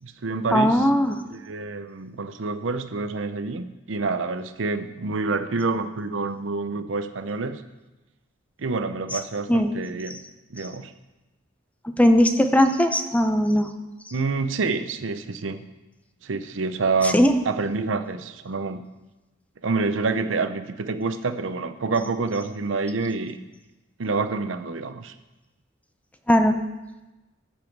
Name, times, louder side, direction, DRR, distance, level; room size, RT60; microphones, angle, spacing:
voice 1, 0.0-0.9 1.3-7.6 8.6-10.2 10.5-10.9 14.1-15.6 16.2-18.9 19.6-23.4 24.0-25.1, right 3 dB, 70° right, 10 dB, 0.7 m, -27 dB
voice 2, 0.5-1.2 9.5-9.7 12.0-13.7 17.1-17.3 26.3-26.6, equal, 5° left, 7 dB, 0.6 m, -18 dB
13.5 x 7.3 x 4.6 m, 1.1 s
head